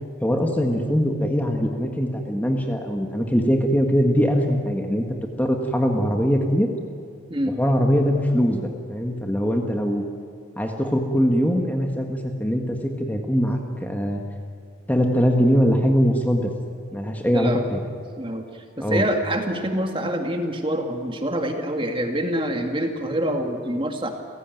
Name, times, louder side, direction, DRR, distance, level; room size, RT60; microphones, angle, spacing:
voice 1, 0.2-5.0 5.4-6.7 7.6-10.0 10.6-14.2 14.9-16.5 16.9-17.8 18.8-19.0, equal, 10° left, 2 dB, 1.7 m, -22 dB
voice 2, 17.3-17.7 18.2-24.1, right 1 dB, 25° right, 4 dB, 2.0 m, -26 dB
29.0 x 16.5 x 9.3 m, 2.3 s
head